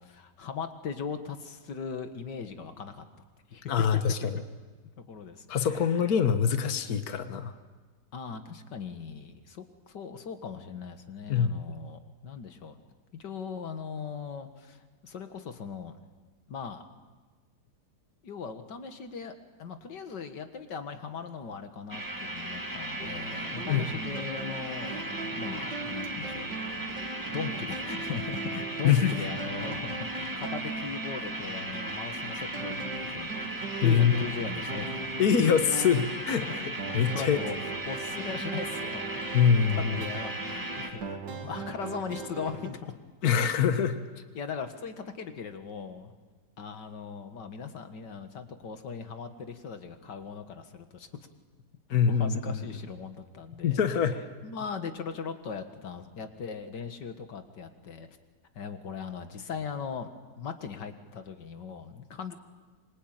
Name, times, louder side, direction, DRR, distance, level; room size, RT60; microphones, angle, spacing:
voice 1, 0.0-3.1 3.5-3.6 5.0-6.0 8.1-12.8 13.2-16.0 16.5-16.9 18.2-19.3 19.6-26.5 27.0-35.2 36.4-36.5 36.9-39.1 40.0-42.9 43.2-43.5 44.3-46.1 46.6-51.1 51.9-53.8 54.4-58.1 58.5-60.1 60.4-62.4, left 6 dB, 90° left, 8 dB, 2.3 m, -39 dB
voice 2, 3.7-4.4 5.5-7.5 11.3-11.6 23.7-23.8 28.8-29.1 33.8-34.3 35.2-37.4 39.3-40.0 43.2-44.0 51.9-52.6 53.6-54.2, left 7 dB, 60° left, 8 dB, 1.7 m, -24 dB
sound 1, 21.9-40.9, right 1 dB, 10° right, 2.1 m, -36 dB
sound 2, 23.0-42.7, right 4 dB, 85° right, 2.5 m, -40 dB
26.5 x 24.0 x 9.0 m, 1.3 s
omnidirectional pair, 1.8 m